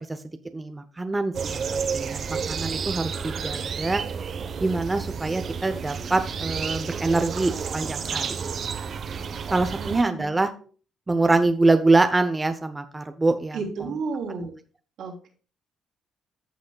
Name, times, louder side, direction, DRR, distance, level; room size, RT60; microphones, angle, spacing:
voice 1, 0.5-4.0 4.6-8.4 9.5-10.5 11.1-13.6, right 2 dB, 20° right, 8 dB, 0.7 m, -24 dB
sound 1, 1.3-10.0, right 6 dB, 55° right, 0.9 m, -31 dB
voice 2, 9.7-10.3 13.5-14.5 15.0-15.3, right 4 dB, 75° right, -1 dB, 2.9 m, -32 dB
14.0 x 6.2 x 2.3 m, 0.39 s
cardioid pair, 90°, 0 cm